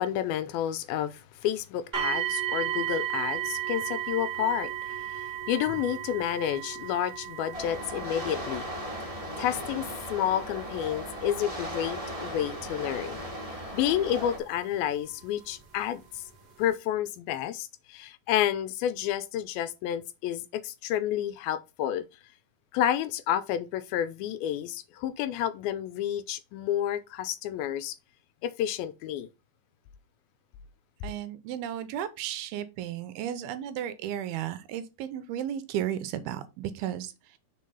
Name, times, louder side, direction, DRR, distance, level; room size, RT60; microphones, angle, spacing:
voice 1, 0.0-8.7 9.0-13.2 13.5-16.2 16.6-22.1 22.7-28.0 28.4-29.3, left 10 dB, 80° left, 2.3 m, -30 dB
sound 1, 1.9-14.8 15.6-15.7 16.3-16.4, right 12 dB, 45° right, 1.3 m, -35 dB
sound 2, 7.5-14.4, equal, 25° right, 0.8 m, -37 dB
voice 2, 31.0-37.4, right 10 dB, 80° right, 2.5 m, -34 dB
6.5 x 4.2 x 5.4 m
omnidirectional pair, 4.6 m